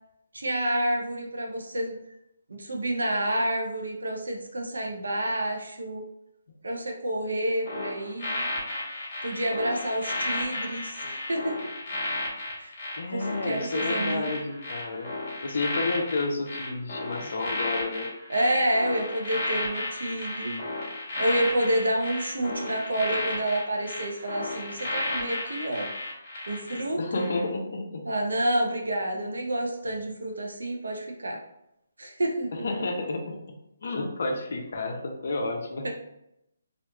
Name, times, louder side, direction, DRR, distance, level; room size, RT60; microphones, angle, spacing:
voice 1, 0.3-2.0 2.5-6.0 6.6-8.5 9.2-11.6 12.6-12.7 13.1-14.3 18.3-20.6 21.2-25.9 26.5-27.3 28.1-31.4 32.0-32.5 35.8-35.9, right 1 dB, 90° right, 1 dB, 0.6 m, -29 dB
sound 1, 7.7-26.8 27.1-27.4, left 2 dB, 40° left, 1.1 m, -33 dB
voice 2, 13.0-15.1 15.4-18.1 26.9-28.1 29.1-29.3 32.6-35.9, left 3 dB, 60° left, 2 dB, 0.5 m, -31 dB
2.9 x 2.4 x 2.2 m, 0.82 s
hypercardioid pair, 155°, 0 cm